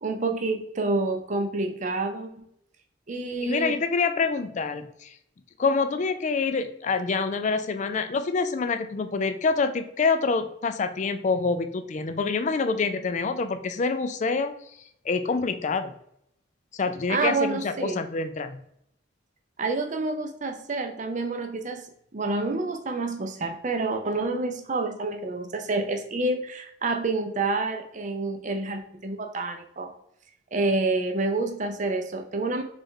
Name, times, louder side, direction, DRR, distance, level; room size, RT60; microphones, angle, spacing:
voice 1, 0.0-2.5 3.1-3.8 17.1-18.0 19.6-21.8 22.1-29.9 30.5-32.6, right 3 dB, 40° right, 5 dB, 0.6 m, -28 dB
voice 2, 3.4-5.2 5.6-14.5 15.0-15.9 16.7-18.6, left 4 dB, 35° left, 9 dB, 0.4 m, -26 dB
4.0 x 3.4 x 3.6 m, 0.73 s
head